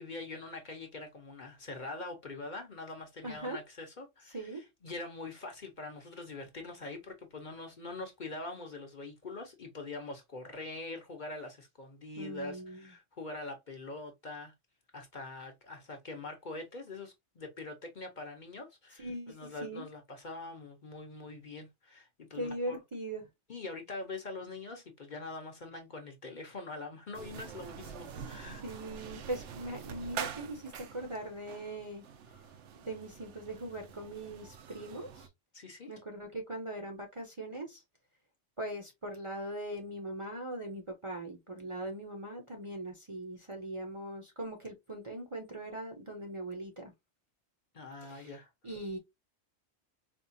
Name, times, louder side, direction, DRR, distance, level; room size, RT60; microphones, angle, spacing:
voice 1, 0.0-14.5 14.9-22.8 23.5-28.6 32.3-32.5 35.5-35.9 47.7-48.5, left 3 dB, 45° left, 0.9 m, -44 dB
voice 2, 3.2-3.6 4.3-4.6 12.2-12.9 19.0-19.8 22.3-23.2 28.6-32.0 32.8-35.3 35.9-37.8 38.6-46.9 48.0-48.3 48.6-49.0, right 1 dB, 30° right, 0.7 m, -40 dB
sound 1, 27.1-35.3, right 7 dB, 75° right, 0.9 m, -45 dB
4.4 x 2.3 x 2.6 m
omnidirectional pair, 1.2 m